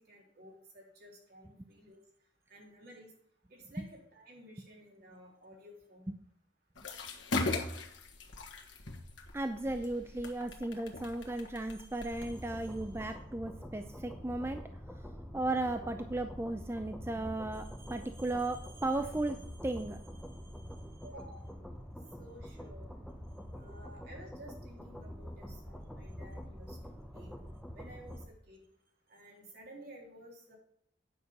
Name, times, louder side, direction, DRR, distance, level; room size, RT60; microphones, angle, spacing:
voice 1, 0.0-2.0 2.5-3.1 3.5-6.1 21.0-21.5 22.2-22.9 23.5-27.4 27.7-28.6 29.1-30.6, equal, 60° right, -1 dB, 3.4 m, -54 dB
sound 1, 6.8-13.0, left 2 dB, 90° left, 1.5 m, -39 dB
voice 2, 9.3-14.6 15.3-20.2 20.7-20.8, right 2 dB, 15° right, 7 dB, 0.5 m, -36 dB
sound 2, 12.1-28.3, equal, ahead, 0.8 m, -46 dB
9.4 x 6.3 x 5.3 m, 0.69 s
head